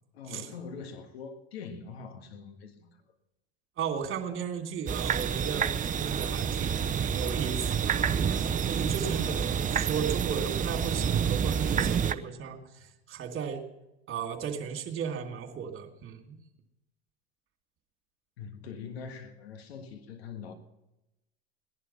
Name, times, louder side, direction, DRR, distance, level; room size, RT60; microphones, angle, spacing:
voice 1, 0.1-2.9 18.4-20.5, left 6 dB, 80° left, 7 dB, 1.7 m, -43 dB
voice 2, 3.8-13.6 14.1-16.4, right 7 dB, 40° right, 2 dB, 3.2 m, -35 dB
sound 1, 4.9-12.1, right 7 dB, 25° right, 0.8 m, -28 dB
18.0 x 11.0 x 5.7 m, 0.94 s
hypercardioid pair, 80°, 31 cm